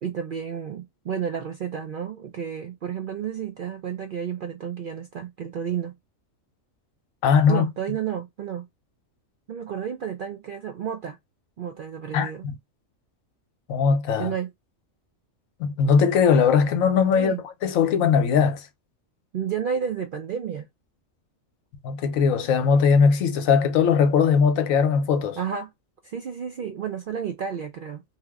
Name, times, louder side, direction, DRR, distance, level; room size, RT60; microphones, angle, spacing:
voice 1, 0.0-5.9 7.5-8.7 9.5-11.2 11.6-12.5 14.2-14.5 17.2-17.4 19.3-20.7 25.4-25.7 26.0-28.0, right 8 dB, 70° right, 0.5 m, -31 dB
voice 2, 7.2-7.6 12.1-12.6 13.7-14.3 15.6-17.4 17.6-18.7 21.8-25.4, left 6 dB, 85° left, 1.1 m, -20 dB
2.9 x 2.1 x 3.4 m
omnidirectional pair, 1.4 m